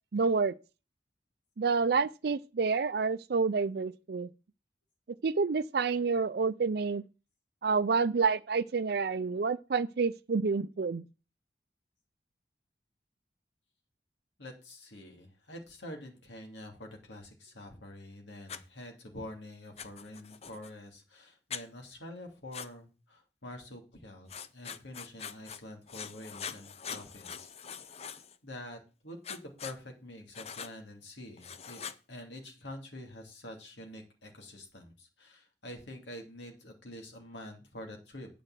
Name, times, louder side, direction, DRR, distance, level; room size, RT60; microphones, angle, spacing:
voice 1, 0.1-0.6 1.6-4.3 5.2-7.0 7.6-11.0, right 4 dB, 60° right, 0.5 m, -28 dB
voice 2, 14.4-27.5 27.9-28.2 28.4-31.8 32.1-38.3, left 1 dB, 85° left, 2.7 m, -47 dB
Writing, 18.5-18.6 19.8-20.7 21.5-21.6 22.5-22.7 24.3-25.6 25.9-28.4 29.2-29.8 30.3-30.7 31.4-32.0, left 7 dB, 35° left, 0.6 m, -43 dB
9.0 x 5.1 x 7.4 m
head